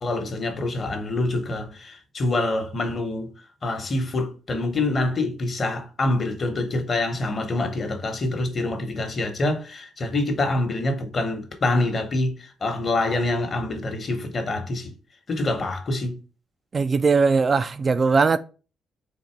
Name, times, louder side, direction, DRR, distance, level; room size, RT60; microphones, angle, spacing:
voice 1, 0.0-3.3 3.6-14.9 15.3-16.2, left 2 dB, 40° left, 1.1 m, -26 dB
voice 2, 16.7-18.4, right 4 dB, 35° right, 0.3 m, -19 dB
4.0 x 2.6 x 4.4 m
cardioid pair, 90°, 0 cm